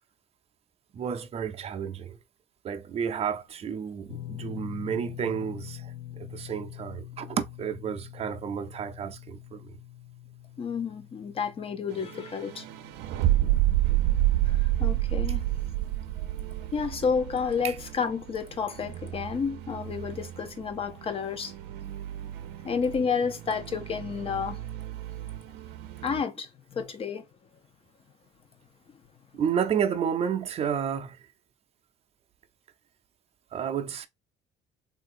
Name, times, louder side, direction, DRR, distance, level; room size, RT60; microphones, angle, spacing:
voice 1, 0.9-2.2 2.6-5.9 6.3-9.7 13.4-13.6 17.6-17.8 29.3-31.2 33.5-34.1, right 7 dB, 40° right, 0.5 m, -31 dB
sound 1, 4.1-16.3 16.6-16.8 18.5-18.6, left 13 dB, 65° left, 1.4 m, -45 dB
voice 2, 10.6-12.6 14.4-15.4 16.7-21.5 22.6-24.6 26.0-27.2, left 6 dB, 35° left, 0.7 m, -30 dB
sound 2, 11.9-26.2, right 14 dB, 85° right, 0.5 m, -30 dB
3.6 x 2.6 x 2.5 m
cardioid pair, 120°, 17 cm